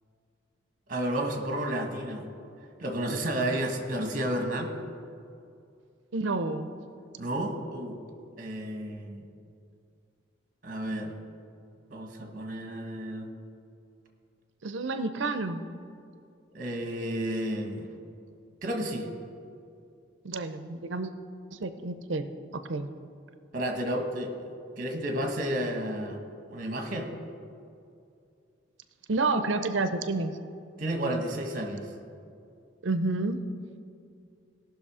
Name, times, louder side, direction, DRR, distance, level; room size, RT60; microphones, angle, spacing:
voice 1, 0.9-2.2 2.8-4.7 7.2-8.0 8.4-9.2 10.6-11.1 11.9-13.3 16.5-17.9 18.6-19.1 23.5-24.3 24.8-26.2 26.5-27.1 30.8-31.9, right 1 dB, 45° right, 3 dB, 1.4 m, -31 dB
voice 2, 6.1-6.7 14.6-15.6 20.2-21.1 21.5-22.9 29.1-30.3 32.8-33.4, right 3 dB, 75° right, 10 dB, 0.6 m, -29 dB
17.5 x 6.1 x 4.9 m, 2.5 s
head